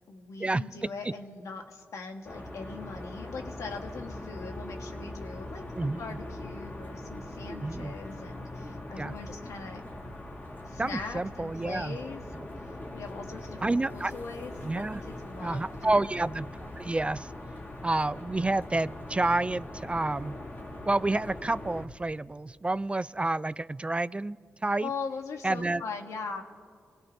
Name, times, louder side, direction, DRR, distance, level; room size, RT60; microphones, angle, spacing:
voice 1, 0.1-9.8 10.6-12.2 12.6-12.7 12.9-16.1 24.8-26.4, left 4 dB, 75° left, 4 dB, 1.4 m, -41 dB
sound 1, 2.2-21.9, left 1 dB, 35° left, 2.4 m, -41 dB
voice 2, 5.8-6.2 7.5-7.9 9.0-9.1 10.8-12.0 13.6-14.1 14.6-15.0 15.4-16.5 16.8-17.3 17.8-20.4 20.9-24.4 24.6-24.9 25.4-25.8, right 2 dB, 20° right, 17 dB, 0.3 m, -29 dB
26.0 x 18.0 x 2.7 m, 2.1 s
cardioid pair, 55°, 5 cm